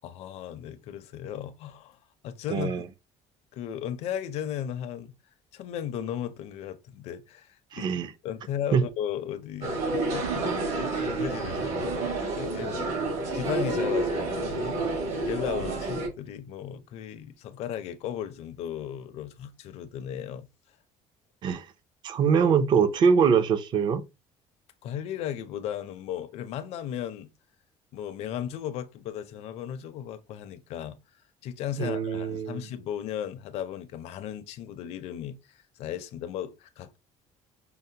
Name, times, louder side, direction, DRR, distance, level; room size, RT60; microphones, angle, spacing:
voice 1, 0.0-2.0 2.2-2.8 3.5-5.1 5.5-7.9 8.2-10.6 11.0-12.9 13.3-14.9 15.2-20.5 24.8-27.3 27.9-31.0 31.4-37.0, left 10 dB, 55° left, 0.5 m, -36 dB
voice 2, 2.5-2.8 7.7-8.1 8.7-8.8 21.4-21.7 22.0-24.0 31.8-32.7, right 6 dB, 35° right, 0.4 m, -23 dB
sound 1, 9.6-16.1, right 2 dB, 60° right, 1.4 m, -29 dB
5.3 x 2.0 x 2.7 m
cardioid pair, 175°, 13 cm